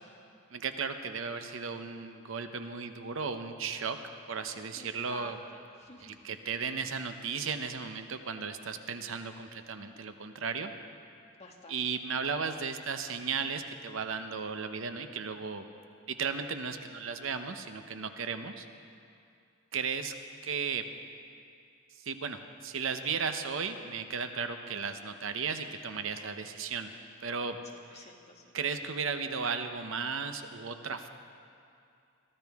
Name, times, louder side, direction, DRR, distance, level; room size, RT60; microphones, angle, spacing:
voice 1, 0.5-4.0 4.3-5.4 6.0-10.7 11.7-15.6 16.1-18.7 19.7-20.1 20.4-20.8 22.0-26.9 27.2-27.6 27.9-28.0 28.5-31.1, right 5 dB, 70° right, 8 dB, 0.8 m, -35 dB
voice 2, 4.7-6.2 11.4-12.0 27.7-28.5, left 2 dB, 30° left, 0 dB, 1.6 m, -51 dB
22.5 x 14.0 x 3.6 m, 2.5 s
head